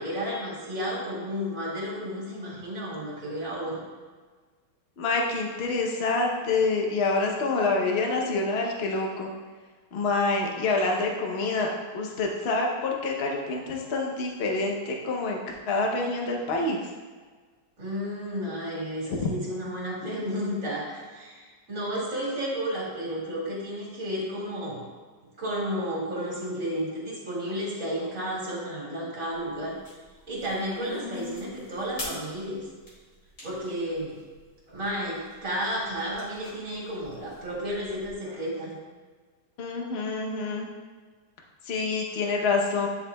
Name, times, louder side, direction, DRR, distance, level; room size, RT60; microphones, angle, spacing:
voice 1, 0.0-3.8 17.8-24.8 25.4-29.8 30.3-32.6 33.4-34.2 34.7-38.8, equal, 45° right, -5 dB, 2.4 m, -32 dB
voice 2, 5.0-9.3 9.9-11.7 11.9-16.8 30.8-31.5 39.6-40.7 41.6-42.9, left 3 dB, 45° left, 0 dB, 0.9 m, -27 dB
sound 1, 29.3-38.1, left 1 dB, 60° left, 2.6 m, -47 dB
10.5 x 5.3 x 2.3 m, 1.4 s
omnidirectional pair, 2.0 m